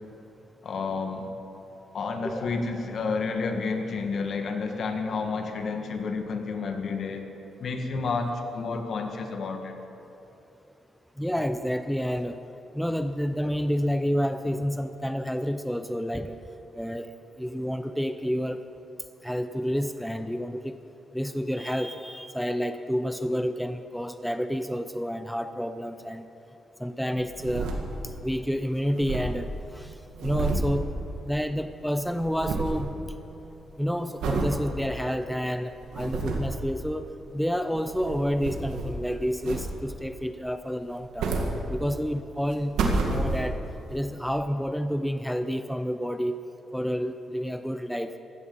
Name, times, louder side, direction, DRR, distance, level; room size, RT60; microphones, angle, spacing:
voice 1, 0.6-1.4 1.9-7.3 7.6-9.8, left 4 dB, 60° left, 5 dB, 1.6 m, -30 dB
voice 2, 11.2-12.4 12.7-16.4 16.7-17.1 17.4-18.6 19.2-20.8 21.1-26.3 26.8-27.7 28.2-30.9 31.3-32.9 33.8-37.1 37.3-41.4 41.7-42.8 43.1-43.6 43.9-46.4 46.7-48.2, equal, ahead, 9 dB, 0.6 m, -29 dB
sound 1, 27.1-28.3 28.5-28.6 28.8-31.6 31.9-32.9 33.3-33.6 34.2-34.6 35.1-35.2 35.7-36.6 37.6-39.0 39.4-40.0 40.8-42.1 42.5-43.7 44.3-44.4, right 3 dB, 90° right, 1.7 m, -30 dB
15.5 x 13.0 x 5.5 m, 3.0 s
cardioid pair, 90°, 0 cm